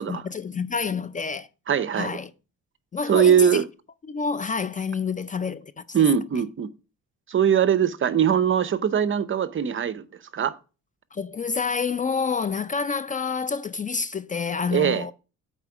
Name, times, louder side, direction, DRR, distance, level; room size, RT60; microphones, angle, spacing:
voice 1, 0.0-1.5 1.9-2.3 2.9-3.6 4.1-5.8 11.1-15.1, left 5 dB, 25° left, 0.4 m, -28 dB
voice 2, 1.7-2.2 3.1-3.6 5.9-6.7 7.3-10.1 10.3-10.6 14.7-15.1, right 8 dB, 40° right, 0.7 m, -21 dB
8.1 x 4.4 x 4.8 m
cardioid pair, 90°, 30 cm